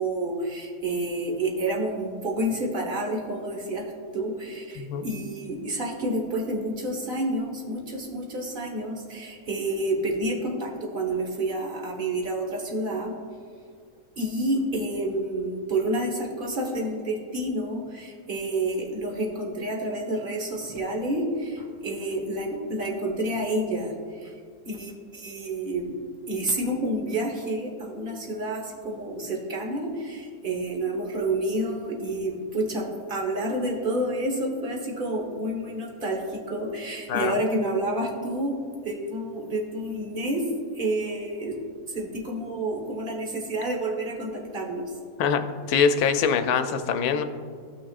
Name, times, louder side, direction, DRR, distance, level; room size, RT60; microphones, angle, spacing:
voice 1, 0.0-13.1 14.2-24.3 24.6-26.0 26.3-38.6 38.8-40.4 40.7-41.5 41.9-44.9, right 1 dB, 40° right, 0 dB, 1.3 m, -29 dB
voice 2, 4.7-5.1 37.1-37.4 45.2-47.2, left 6 dB, 85° left, 8 dB, 1.1 m, -24 dB
14.5 x 6.1 x 2.4 m, 2.1 s
omnidirectional pair, 1.5 m